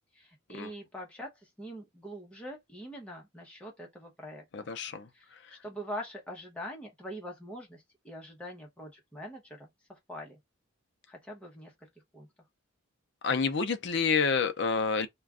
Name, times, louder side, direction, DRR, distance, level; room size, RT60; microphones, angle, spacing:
voice 1, 0.1-4.7 5.1-10.4 11.1-11.9 12.1-12.3, equal, 5° left, 0.8 m, -44 dB
voice 2, 4.5-5.1 13.2-15.1, left 5 dB, 55° left, 0.5 m, -28 dB
2.4 x 2.2 x 3.4 m
head